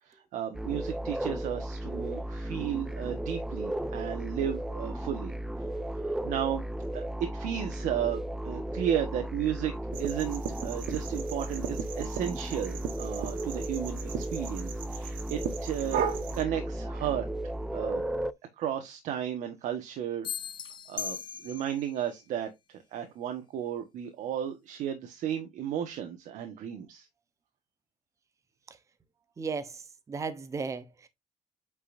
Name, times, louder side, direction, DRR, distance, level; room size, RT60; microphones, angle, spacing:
voice 1, 0.0-5.3 6.0-6.7 6.9-7.1 7.3-9.7 10.0-16.0 16.3-17.2 17.7-18.0 18.6-20.3 20.9-22.5 22.9-27.1, right 10 dB, 70° right, 1.6 m, -34 dB
sound 1, 0.5-18.3, right 1 dB, 5° right, 0.4 m, -35 dB
sound 2, 9.9-16.4, right 8 dB, 85° right, 1.4 m, -37 dB
sound 3, 20.2-21.9, left 8 dB, 35° left, 0.7 m, -38 dB
voice 2, 29.4-29.8 30.1-31.1, right 5 dB, 25° right, 0.9 m, -35 dB
8.6 x 5.4 x 2.7 m
cardioid pair, 165°, 14 cm